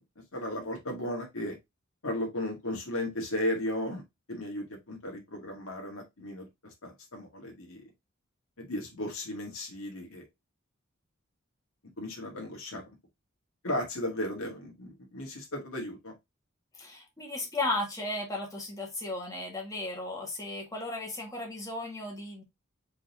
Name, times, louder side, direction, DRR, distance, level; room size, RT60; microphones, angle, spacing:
voice 1, 0.3-1.6 2.0-4.0 4.3-6.5 6.8-7.8 8.6-10.3 12.0-12.8 13.6-16.1, left 1 dB, 90° left, 1.8 m, -35 dB
voice 2, 16.7-22.4, left 2 dB, 15° left, 1.7 m, -35 dB
4.7 x 4.0 x 2.8 m
head